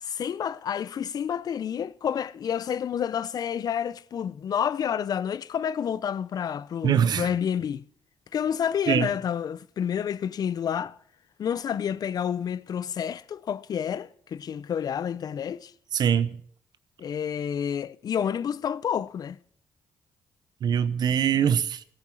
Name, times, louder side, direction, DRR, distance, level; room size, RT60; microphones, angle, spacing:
voice 1, 0.0-7.8 8.3-11.0 11.4-15.7 17.0-19.4 21.3-21.4, left 8 dB, 60° left, 0.5 m, -29 dB
voice 2, 6.8-7.3 8.9-9.1 15.9-16.4 20.6-21.8, right 8 dB, 65° right, 0.8 m, -23 dB
15.0 x 8.7 x 6.3 m
supercardioid pair, 60°, 8 cm